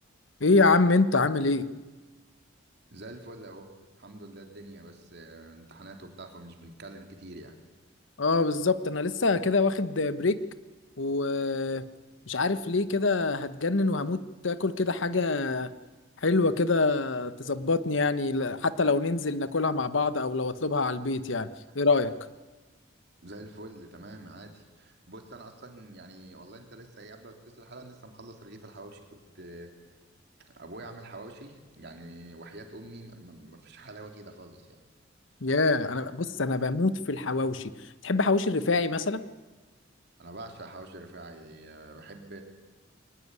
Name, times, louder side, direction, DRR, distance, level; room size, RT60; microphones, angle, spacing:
voice 1, 0.4-1.6 8.2-10.4 11.0-11.8 12.3-15.7 16.2-21.5 21.7-22.1 35.4-37.7 38.0-39.2, left 3 dB, 70° left, 13 dB, 1.0 m, -25 dB
voice 2, 2.9-3.7 4.0-7.5 23.2-29.9 30.5-34.8 40.2-42.4, right 2 dB, 60° right, 4 dB, 3.2 m, -46 dB
23.0 x 19.0 x 9.6 m, 1.3 s
head